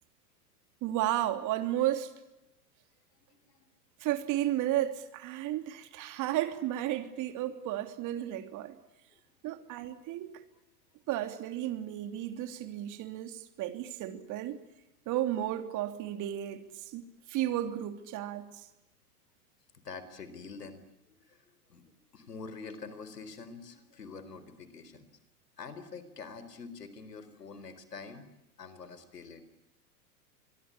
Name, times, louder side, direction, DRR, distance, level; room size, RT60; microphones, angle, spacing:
voice 1, 0.8-2.1 4.0-8.8 9.4-10.3 11.1-14.6 15.0-18.7, right 13 dB, 40° right, 3.3 m, -33 dB
voice 2, 3.1-3.7 9.1-9.2 19.7-25.1 25.6-28.3 28.6-29.4, left 4 dB, 85° left, 4.1 m, -46 dB
26.0 x 22.5 x 8.7 m
hypercardioid pair, 100°, 47 cm